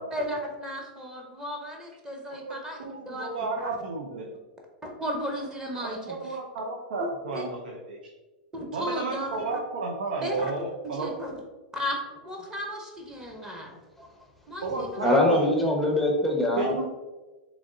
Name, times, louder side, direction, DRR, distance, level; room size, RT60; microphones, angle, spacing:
voice 1, 0.0-2.8 3.1-3.3 3.6-3.7 4.8-6.2 7.3-7.4 8.5-9.6 10.2-10.5 10.9-11.3 11.7-12.0 12.2-13.7 14.5-15.1, equal, 15° right, 0 dB, 0.9 m, -34 dB
voice 2, 2.4-4.3 5.8-8.0 8.7-11.1 14.6-15.5 16.5-16.8, right 3 dB, 85° right, 0 dB, 0.6 m, -32 dB
voice 3, 14.8-16.7, left 1 dB, 5° left, 0 dB, 0.7 m, -23 dB
3.5 x 3.1 x 3.8 m, 1.2 s
hypercardioid pair, 120°, 5 cm